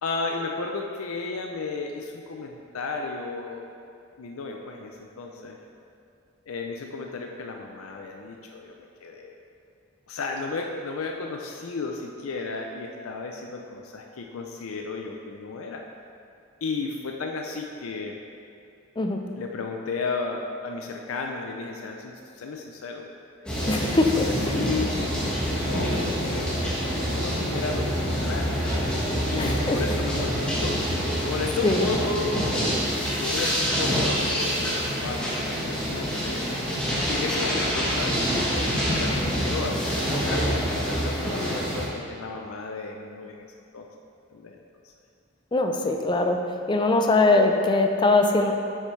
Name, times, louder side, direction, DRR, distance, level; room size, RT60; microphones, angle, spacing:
voice 1, 0.0-3.6 4.2-5.6 6.5-9.4 10.1-15.8 16.6-18.2 19.4-23.1 23.4-28.6 29.3-30.8 31.2-32.5 33.0-36.4 37.1-43.5 43.7-43.9 44.3-44.9, left 4 dB, 85° left, 2 dB, 0.5 m, -34 dB
sound 1, 23.5-41.9, equal, 5° left, 1.4 m, -26 dB
voice 2, 23.7-24.3 29.4-29.8 31.6-31.8 45.5-46.4 46.7-48.5, left 2 dB, 20° left, 3 dB, 0.4 m, -21 dB
7.7 x 6.5 x 3.2 m, 2.5 s
head